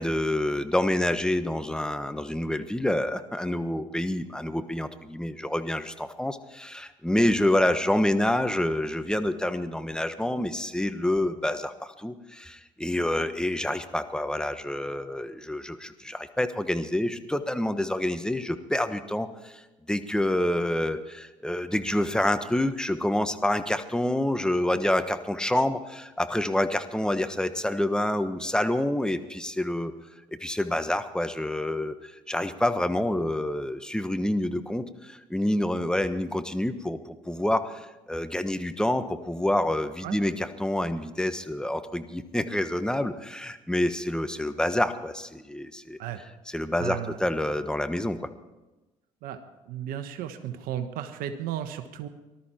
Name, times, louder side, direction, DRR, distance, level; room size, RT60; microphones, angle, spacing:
voice 1, 0.0-19.6 19.9-29.9 30.3-46.0 46.5-48.3, left 1 dB, 5° left, 10 dB, 1.3 m, -27 dB
voice 2, 46.8-47.2 49.2-49.4 49.7-52.1, right 10 dB, 70° right, 9 dB, 1.2 m, -34 dB
19.0 x 13.0 x 4.4 m, 1.1 s
hypercardioid pair, 65°, 15 cm